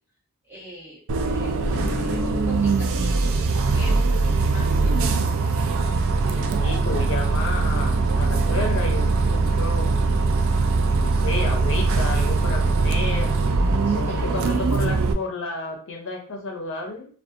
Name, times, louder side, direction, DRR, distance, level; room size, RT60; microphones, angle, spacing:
voice 1, 0.4-5.1 13.8-14.7, equal, 10° right, -7 dB, 1.1 m, -42 dB
Bus, 1.1-15.1, right 3 dB, 60° right, 0.3 m, -21 dB
voice 2, 6.3-10.0 10.9-13.5 13.9-17.1, left 2 dB, 60° left, 1 dB, 0.6 m, -31 dB
2.6 x 2.2 x 2.4 m, 0.43 s
head